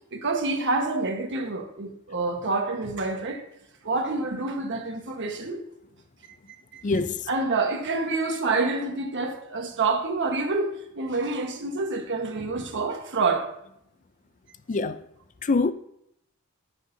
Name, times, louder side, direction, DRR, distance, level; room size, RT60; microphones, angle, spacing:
voice 1, 0.1-3.4 3.8-5.6 6.7-7.0 7.3-13.5, right 3 dB, 55° right, 1.3 m, -27 dB
voice 2, 6.8-7.2 14.7-15.0 15.4-15.7, left 3 dB, 35° left, 0.4 m, -24 dB
15.5 x 6.5 x 2.7 m
head